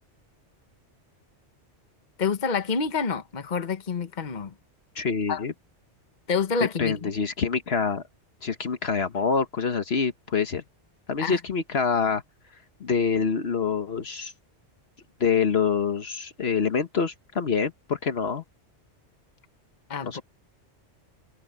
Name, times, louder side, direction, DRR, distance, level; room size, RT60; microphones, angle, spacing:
voice 1, 2.2-4.5 5.3-5.4 6.3-7.1 11.2-11.4 19.9-20.2, left 5 dB, 40° left, 1.3 m, -28 dB
voice 2, 4.9-5.5 6.8-8.0 8.4-10.6 11.1-12.2 12.8-14.3 15.2-18.4 20.0-20.2, left 5 dB, 60° left, 1.4 m, -26 dB
omnidirectional pair, 1.2 m